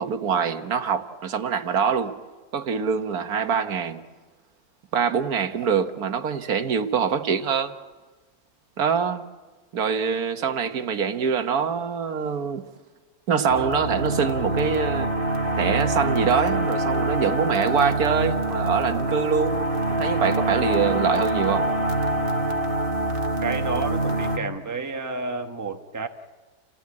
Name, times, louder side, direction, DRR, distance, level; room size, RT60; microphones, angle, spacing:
voice 1, 0.0-2.1 2.5-4.0 4.9-7.7 8.8-9.2 9.7-12.6 13.3-15.1 15.5-19.6 19.9-21.6, right 6 dB, 85° right, 1.7 m, -24 dB
sound 1, 13.5-24.4, right 1 dB, 40° right, 1.5 m, -25 dB
voice 2, 23.4-26.1, right 4 dB, 15° right, 1.0 m, -30 dB
29.5 x 15.5 x 8.7 m
omnidirectional pair, 1.6 m